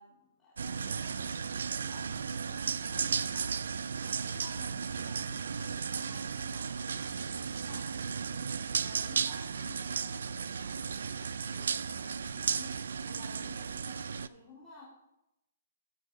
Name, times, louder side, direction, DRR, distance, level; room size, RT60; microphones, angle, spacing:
voice 1, 0.0-14.8, left 3 dB, 10° left, -10 dB, 2.3 m, -55 dB
sound 1, 0.6-14.3, right 6 dB, 75° right, 0.4 m, -35 dB
13.5 x 4.6 x 4.9 m, 0.90 s
hypercardioid pair, 175°, 0 cm